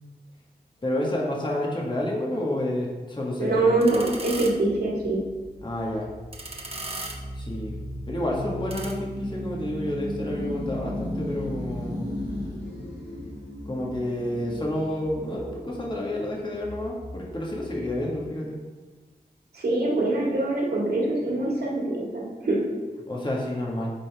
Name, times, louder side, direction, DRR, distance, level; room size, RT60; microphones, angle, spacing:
voice 1, 0.8-3.6 5.6-6.1 7.4-12.1 13.7-18.6 23.1-23.9, left 1 dB, 30° left, -3 dB, 1.6 m, -29 dB
voice 2, 3.4-5.2 19.5-22.6, right 2 dB, 70° right, -4 dB, 2.2 m, -24 dB
sound 1, 3.8-8.9, right 2 dB, 35° right, 1.2 m, -40 dB
sound 2, 3.9-18.1, left 1 dB, 90° left, 1.8 m, -36 dB
9.7 x 3.9 x 3.5 m, 1.3 s
cardioid pair, 60°, 17 cm